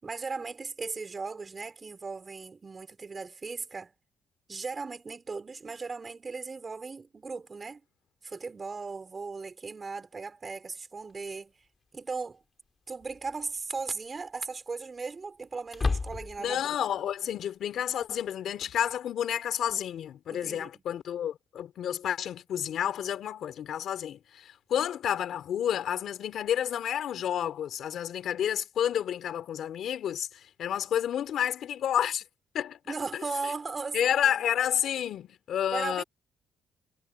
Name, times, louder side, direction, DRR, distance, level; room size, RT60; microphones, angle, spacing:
voice 1, 0.0-3.9 4.5-7.8 8.2-11.5 11.9-12.4 12.9-16.8 20.3-20.8 32.9-34.5 35.7-36.0, right 4 dB, 30° right, 5.2 m, -37 dB
sound 1, 11.1-11.2 13.0-13.4 13.8-13.9 15.7-16.6, left 4 dB, 30° left, 5.8 m, -31 dB
voice 2, 16.4-32.2 32.5-32.8 33.9-36.0, left 10 dB, 70° left, 3.5 m, -30 dB
cardioid pair, 90°, 0 cm